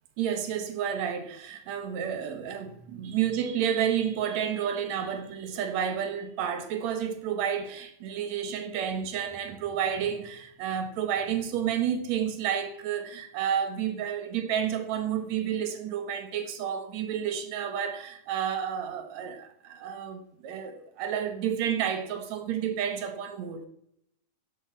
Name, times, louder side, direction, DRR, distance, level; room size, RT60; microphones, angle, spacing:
voice 1, 0.2-23.7, right 8 dB, 60° right, 2.4 m, -30 dB
12.5 x 11.0 x 4.7 m
omnidirectional pair, 3.9 m